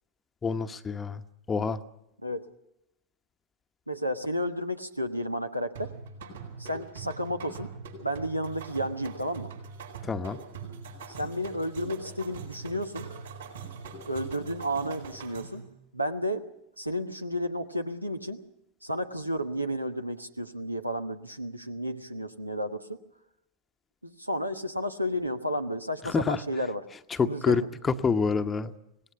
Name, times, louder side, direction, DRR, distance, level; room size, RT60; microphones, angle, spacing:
voice 1, 0.4-1.2 1.5-1.8 10.0-10.4 26.0-26.4 27.1-28.7, left 5 dB, 15° left, 10 dB, 1.0 m, -27 dB
voice 2, 3.9-5.9 6.6-7.7 8.0-9.5 11.1-13.1 14.1-15.6 15.9-16.4 16.8-18.4 18.8-23.0 24.0-26.8 27.2-27.7, equal, 90° right, 8 dB, 1.3 m, -32 dB
sound 1, 5.7-15.7, right 5 dB, 65° right, 7.9 m, -42 dB
25.5 x 19.0 x 5.9 m, 0.84 s
figure-of-eight pair, 90°, 0 cm